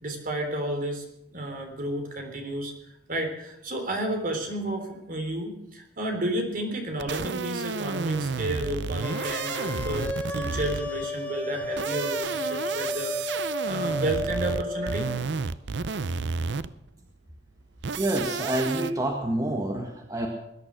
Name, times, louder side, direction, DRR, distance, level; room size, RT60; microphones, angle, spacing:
voice 1, 0.0-1.0 1.3-2.7 3.1-15.1, right 1 dB, 50° right, 4 dB, 3.6 m, -31 dB
sound 1, 7.0-11.0 11.6-16.9 17.8-18.9, right 4 dB, 70° right, 0.6 m, -31 dB
sound 2, 9.0-15.2, left 1 dB, 10° left, 1.5 m, -33 dB
voice 2, 18.0-20.3, right 1 dB, 20° right, 2 dB, 1.6 m, -27 dB
20.0 x 11.0 x 6.4 m, 0.85 s
head